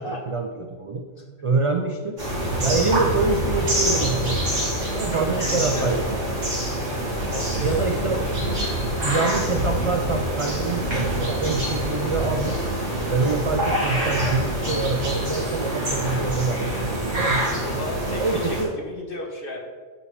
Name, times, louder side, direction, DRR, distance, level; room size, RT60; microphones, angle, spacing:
voice 1, 0.0-1.1 1.4-2.2 2.6-4.6 4.9-6.2 7.6-8.2 9.0-12.6 13.1-17.4 18.1-18.7, right 3 dB, 50° right, 4 dB, 0.4 m, -25 dB
sound 1, 2.2-18.6, right 1 dB, 80° right, 2.5 m, -25 dB
voice 2, 5.1-6.0 7.3-8.2 17.6-19.6, left 1 dB, 50° left, 0 dB, 1.5 m, -34 dB
11.5 x 5.1 x 3.3 m, 1.5 s
omnidirectional pair, 1.2 m